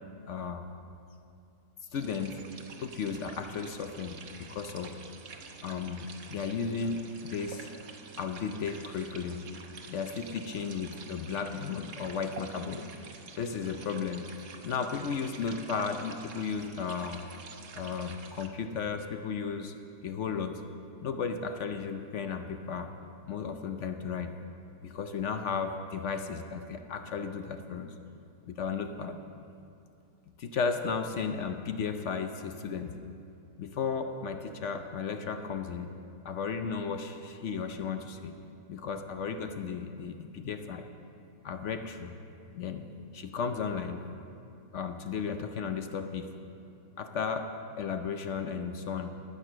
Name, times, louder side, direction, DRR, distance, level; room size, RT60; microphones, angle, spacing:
voice 1, 0.3-0.6 1.9-2.4 2.8-5.0 5.6-7.7 8.2-9.5 9.9-12.9 13.4-14.3 14.6-17.2 17.7-19.8 20.0-20.7 21.0-22.9 23.3-24.4 24.8-27.9 28.5-29.2 30.4-33.0 33.6-35.9 36.2-38.3 38.7-40.8 41.4-42.2 42.5-42.8 43.1-44.0 44.7-46.3 47.0-49.1, left 5 dB, 60° left, 7 dB, 0.8 m, -34 dB
sound 1, 1.9-18.5, right 5 dB, 55° right, 1.2 m, -48 dB
10.5 x 10.0 x 7.5 m, 2.6 s
omnidirectional pair, 1.7 m